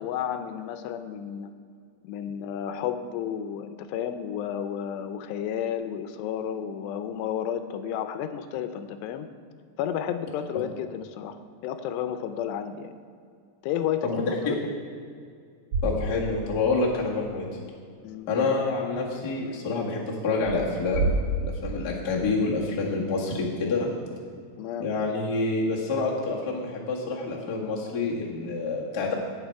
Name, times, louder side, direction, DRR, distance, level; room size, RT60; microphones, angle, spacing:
voice 1, 0.0-1.5 2.0-9.3 9.8-12.9 13.6-14.6 18.0-18.3 24.6-24.9, left 9 dB, 85° left, 9 dB, 2.7 m, -32 dB
voice 2, 14.0-14.5 15.8-17.5 18.3-21.1 21.4-23.9 24.8-29.1, left 3 dB, 50° left, -4 dB, 1.2 m, -27 dB
sound 1, 15.7-16.7 17.0-17.1 20.3-22.4, right 2 dB, 65° right, 2.2 m, -29 dB
17.5 x 6.9 x 4.6 m, 2.2 s
omnidirectional pair, 4.9 m